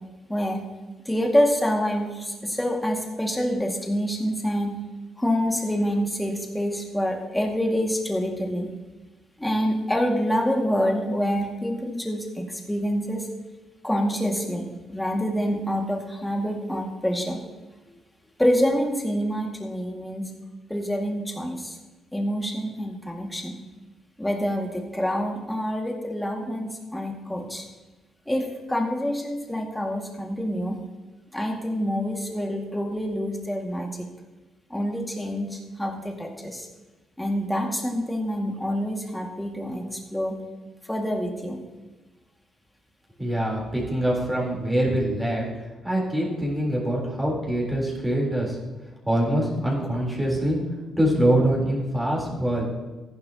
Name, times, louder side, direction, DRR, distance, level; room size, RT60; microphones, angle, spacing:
voice 1, 0.3-0.6 1.1-4.7 5.2-8.7 9.4-13.3 13.8-17.4 18.4-20.3 20.7-21.8 22.1-23.6 24.2-27.6 28.3-30.8 31.3-33.9 34.7-36.7 37.2-40.4 40.9-41.6, equal, 5° left, 1 dB, 2.1 m, -26 dB
voice 2, 43.2-48.6 49.0-50.6 51.0-52.7, right 1 dB, 10° right, -4 dB, 3.9 m, -24 dB
14.5 x 11.0 x 3.0 m, 1.2 s
cardioid pair, 90°, 0 cm